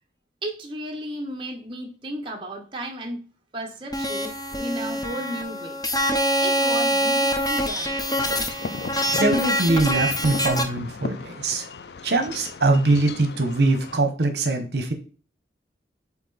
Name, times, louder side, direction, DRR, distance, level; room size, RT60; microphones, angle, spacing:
voice 1, 0.4-3.3 3.5-5.8 6.4-8.0, right 1 dB, 30° right, 1.0 m, -34 dB
sound 1, 3.9-10.6, equal, 20° left, 0.7 m, -24 dB
Wind chime / Wind, 7.7-14.0, left 4 dB, 70° left, 0.4 m, -37 dB
voice 2, 9.2-11.7 12.0-14.9, right 2 dB, 65° right, 0.9 m, -22 dB
8.0 x 2.9 x 4.0 m
head